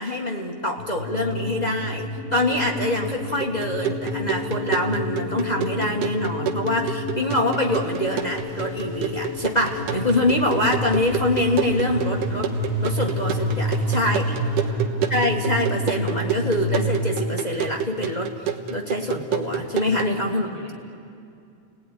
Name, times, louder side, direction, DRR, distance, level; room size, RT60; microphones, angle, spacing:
voice 1, 0.0-12.5 12.8-14.2 15.1-20.5, left 1 dB, 25° left, 1 dB, 0.9 m, -25 dB
sound 1, 0.8-17.3, left 1 dB, 45° left, 6.0 m, -29 dB
sound 2, 3.4-20.2, right 7 dB, 75° right, 2.8 m, -30 dB
sound 3, 7.6-14.7, right 1 dB, 45° right, 8.0 m, -49 dB
voice 2, 13.6-14.9 19.8-20.8, equal, 15° right, -4 dB, 6.6 m, -44 dB
30.0 x 19.0 x 10.0 m, 2.5 s
omnidirectional pair, 3.8 m